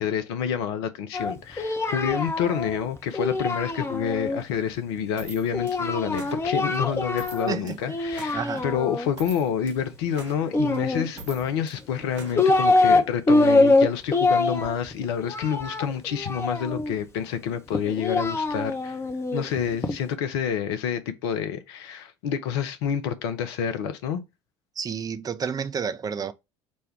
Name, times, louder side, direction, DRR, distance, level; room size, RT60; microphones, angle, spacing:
voice 1, 0.0-19.0 19.3-24.2, left 8 dB, 65° left, 0.6 m, -28 dB
Singing, 1.1-4.4 5.5-7.6 7.9-9.1 10.5-11.4 12.0-13.0 13.3-16.9 17.7-20.0, left 2 dB, 15° left, 0.7 m, -24 dB
sound 1, 5.2-13.0, right 4 dB, 80° right, 0.9 m, -45 dB
voice 2, 7.5-7.8 8.3-8.6 24.8-26.3, right 6 dB, 25° right, 0.5 m, -30 dB
5.2 x 2.2 x 3.4 m
figure-of-eight pair, 65°, 15 cm